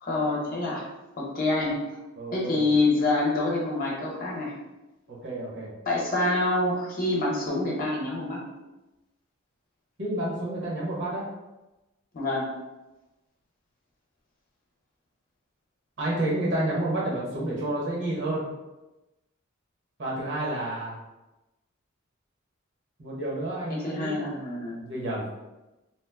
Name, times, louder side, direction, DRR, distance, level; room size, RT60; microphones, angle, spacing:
voice 1, 0.0-0.8 1.2-1.8 2.3-4.5 5.8-8.4 12.1-12.5 23.7-24.8, left 2 dB, 45° left, -3 dB, 0.8 m, -26 dB
voice 2, 2.2-2.6 5.1-5.7 10.0-11.3 16.0-18.5 20.0-21.0 23.0-24.1 24.8-25.2, right 1 dB, 60° right, -5 dB, 1.1 m, -30 dB
2.9 x 2.0 x 3.4 m, 1.0 s
head